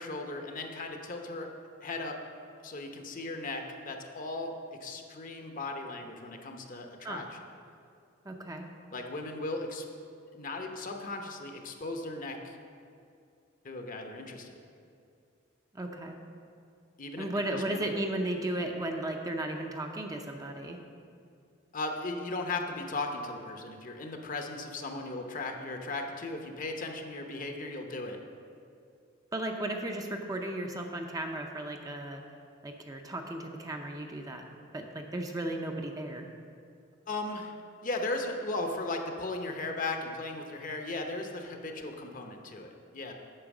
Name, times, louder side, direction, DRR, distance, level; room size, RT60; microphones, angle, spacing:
voice 1, 0.0-1.5 1.8-2.2 2.6-4.5 4.8-7.4 8.9-9.9 10.3-12.5 13.6-14.5 17.0-17.8 21.7-28.2 37.1-37.5 37.8-43.1, left 2 dB, 40° left, 4 dB, 0.8 m, -37 dB
voice 2, 8.3-8.7 15.7-16.2 17.2-20.8 29.3-32.2 32.6-34.4 34.7-36.3, right 1 dB, 20° right, 3 dB, 0.6 m, -35 dB
8.8 x 5.7 x 7.1 m, 2.4 s
head